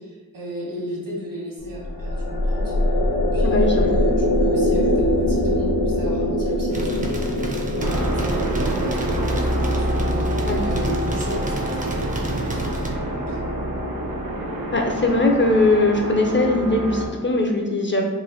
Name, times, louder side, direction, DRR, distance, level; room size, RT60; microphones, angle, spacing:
voice 1, 0.0-2.7 3.3-7.3 7.6-13.7, right 1 dB, 65° right, -4 dB, 1.2 m, -34 dB
sound 1, 1.6-13.1, left 1 dB, 80° left, 0.7 m, -24 dB
voice 2, 3.4-3.7 10.4-10.6 14.7-18.0, left 2 dB, 35° left, 1 dB, 0.4 m, -20 dB
sound 2, 6.7-12.9, right 1 dB, 25° right, 0.5 m, -33 dB
sound 3, 7.8-17.1, right 1 dB, 85° right, 0.6 m, -26 dB
3.1 x 2.4 x 3.8 m, 1.3 s
wide cardioid pair, 75°, 35 cm